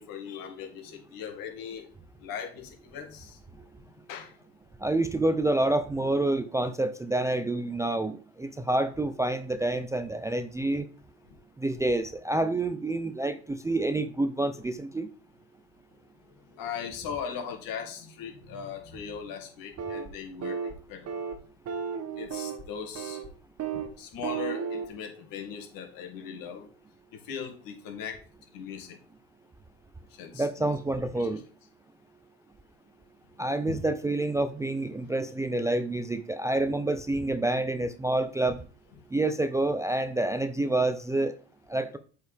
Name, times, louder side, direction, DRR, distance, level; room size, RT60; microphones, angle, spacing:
voice 1, 0.0-1.9 2.2-3.4 4.1-4.3 16.5-21.2 22.2-23.2 24.0-26.7 27.2-28.2 28.5-29.0 30.1-30.7 31.1-31.3 33.7-33.8, left 7 dB, 65° left, 2.3 m, -39 dB
voice 2, 4.8-10.8 11.6-15.1 30.3-31.4 33.4-38.6 39.1-41.3 41.7-42.0, right 2 dB, 10° right, 0.4 m, -28 dB
sound 1, 19.8-20.1 20.4-20.7 21.1-21.3 21.7-22.6 22.9-23.3 23.6-23.9 24.2-24.8, right 7 dB, 45° right, 1.4 m, -33 dB
8.1 x 4.7 x 3.4 m
supercardioid pair, 100°, 36 cm